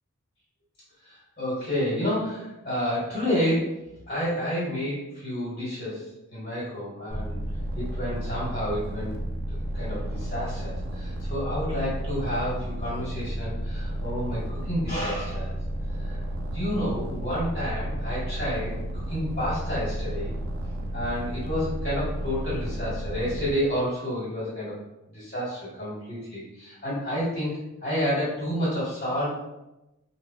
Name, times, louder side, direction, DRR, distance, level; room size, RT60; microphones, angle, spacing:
voice 1, 1.0-3.8 4.1-7.4 7.7-9.1 9.7-15.6 16.0-20.3 20.9-24.7 25.1-27.5 27.8-29.3, equal, 35° left, -11 dB, 1.3 m, -30 dB
sound 1, 7.1-23.5, right 1 dB, 70° right, 0.5 m, -32 dB
3.1 x 2.2 x 2.4 m, 0.96 s
head